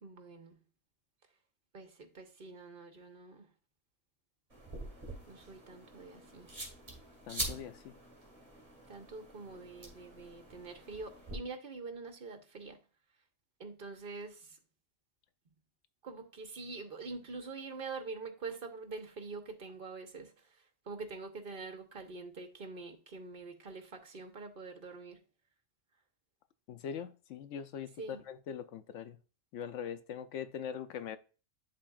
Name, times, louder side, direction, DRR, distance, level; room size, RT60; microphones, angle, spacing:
voice 1, 0.0-0.6 1.7-3.5 5.3-6.5 8.9-12.8 13.6-14.5 16.0-20.3 20.9-25.2 28.0-28.2, right 4 dB, 45° right, 1.2 m, -45 dB
sound 1, 4.5-11.4, right 1 dB, 25° right, 2.1 m, -45 dB
voice 2, 7.3-7.9 26.7-29.2 29.5-31.2, left 8 dB, 80° left, 0.9 m, -42 dB
10.5 x 3.8 x 2.4 m
omnidirectional pair, 1.3 m